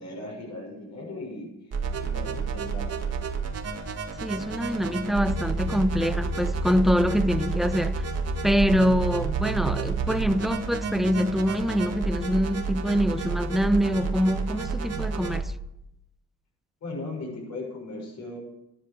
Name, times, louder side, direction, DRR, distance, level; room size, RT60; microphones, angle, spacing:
voice 1, 0.0-3.1 16.8-18.4, left 2 dB, 65° left, 6.5 m, -38 dB
sound 1, 1.7-15.4, right 4 dB, 55° right, 2.0 m, -30 dB
voice 2, 4.2-8.0 8.4-15.5, equal, ahead, 0.6 m, -25 dB
11.5 x 11.0 x 6.3 m
cardioid pair, 90°, 30 cm